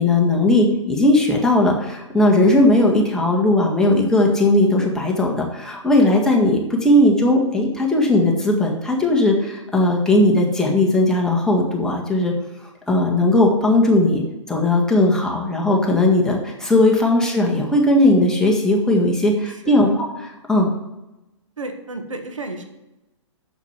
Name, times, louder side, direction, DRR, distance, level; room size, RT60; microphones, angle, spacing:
voice 1, 0.0-12.3 12.9-14.2 14.5-20.7, left 1 dB, 5° left, -2 dB, 1.7 m, -17 dB
voice 2, 19.5-20.0 21.6-22.6, right 2 dB, 85° right, 5 dB, 1.5 m, -33 dB
7.1 x 7.1 x 5.9 m, 0.97 s
hypercardioid pair, 125°, 16 cm